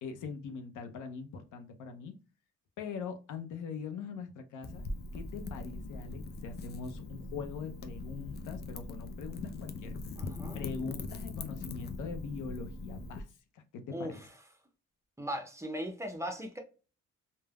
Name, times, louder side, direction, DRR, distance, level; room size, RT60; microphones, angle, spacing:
voice 1, 0.0-2.1 2.8-4.8 5.1-10.0 10.5-13.3 13.5-14.2, left 5 dB, 80° left, 0.6 m, -42 dB
Wind / Fire, 4.6-13.2, left 3 dB, 35° left, 0.4 m, -41 dB
voice 2, 10.2-10.6 13.9-14.3 15.2-16.6, equal, 10° right, 0.6 m, -38 dB
3.3 x 2.1 x 2.2 m
cardioid pair, 90°, 30 cm